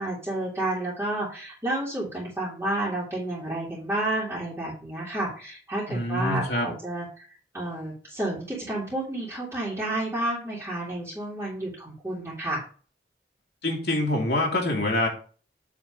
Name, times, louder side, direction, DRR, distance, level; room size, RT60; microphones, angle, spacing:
voice 1, 0.0-7.3 7.5-12.6, right 1 dB, 15° right, -9 dB, 2.3 m, -30 dB
voice 2, 5.9-6.7 13.6-15.1, left 1 dB, 60° left, -1 dB, 2.3 m, -25 dB
8.6 x 3.7 x 5.2 m, 0.40 s
head